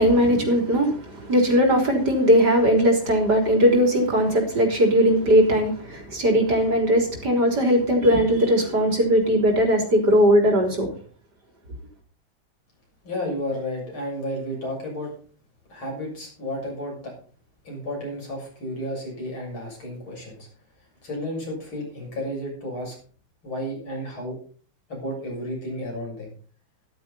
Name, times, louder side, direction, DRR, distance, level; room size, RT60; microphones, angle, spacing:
voice 1, 0.0-10.9, equal, 55° right, 2 dB, 4.3 m, -19 dB
voice 2, 13.0-15.1 15.7-17.1 17.6-20.4 21.0-22.9 23.4-24.4 24.9-26.3, equal, 90° left, -1 dB, 7.8 m, -32 dB
14.0 x 12.5 x 4.2 m, 0.43 s
omnidirectional pair, 2.2 m